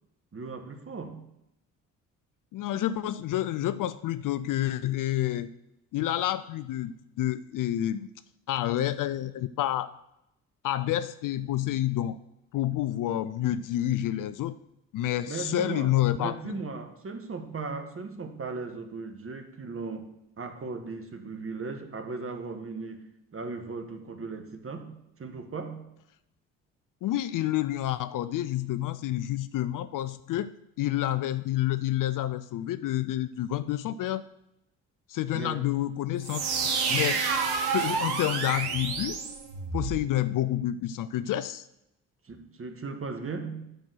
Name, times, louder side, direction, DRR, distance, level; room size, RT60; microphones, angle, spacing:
voice 1, 0.3-1.3 15.3-20.1 20.4-25.9 35.3-35.7 42.2-43.6, right 4 dB, 35° right, 6 dB, 1.5 m, -37 dB
voice 2, 2.5-5.5 5.9-8.1 8.5-9.9 10.6-12.2 12.5-14.6 14.9-16.3 27.0-30.5 30.8-34.3 35.1-36.4 36.9-37.2 37.7-39.2 39.7-41.7, left 13 dB, 50° left, 14 dB, 0.5 m, -29 dB
sound 1, 36.2-40.0, right 5 dB, 65° right, 1.3 m, -29 dB
10.0 x 4.4 x 6.2 m, 0.84 s
hypercardioid pair, 45°, 40 cm